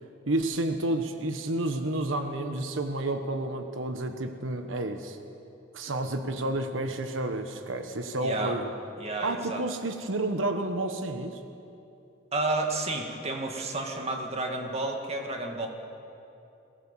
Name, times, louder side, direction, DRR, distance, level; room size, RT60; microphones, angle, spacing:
voice 1, 0.3-5.2 5.7-8.7 9.2-11.4, right 2 dB, 90° right, 7 dB, 1.3 m, -30 dB
voice 2, 8.2-8.6 9.0-9.6 12.3-15.7, right 2 dB, 35° right, 2 dB, 2.1 m, -31 dB
22.5 x 17.5 x 7.4 m, 2.7 s
head